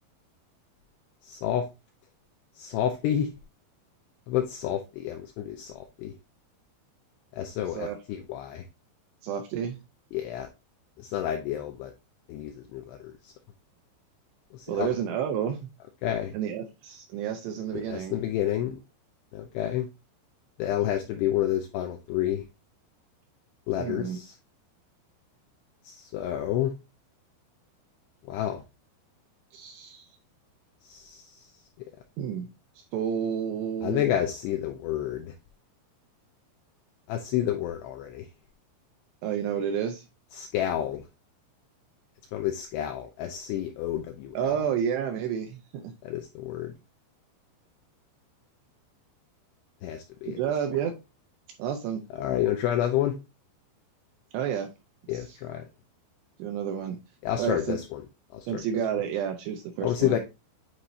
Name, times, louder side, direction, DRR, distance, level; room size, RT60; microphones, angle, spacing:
voice 1, 1.2-1.6 2.6-3.3 4.3-6.2 7.4-8.6 10.1-10.5 11.0-11.9 12.3-13.3 14.5-14.9 16.0-16.3 17.7-18.8 19.3-19.9 20.6-22.4 23.7-24.3 25.8-26.7 28.3-28.6 30.8-31.5 33.8-35.3 37.1-38.3 40.4-41.0 42.3-44.6 46.0-46.7 49.8-50.4 52.2-53.2 55.1-55.7 57.2-58.0 58.3-58.6 59.8-60.2, left 11 dB, 80° left, 2.4 m, -29 dB
voice 2, 7.6-8.0 9.2-9.8 14.7-15.6 16.3-18.2 23.8-24.2 29.5-30.1 32.2-32.5 32.8-34.1 39.2-40.1 44.3-45.9 50.2-50.9 51.6-52.0 54.3-54.7 55.3-55.4 56.4-57.0 57.4-57.8 58.5-60.2, right 8 dB, 80° right, 2.6 m, -30 dB
9.7 x 4.3 x 2.6 m
omnidirectional pair, 5.4 m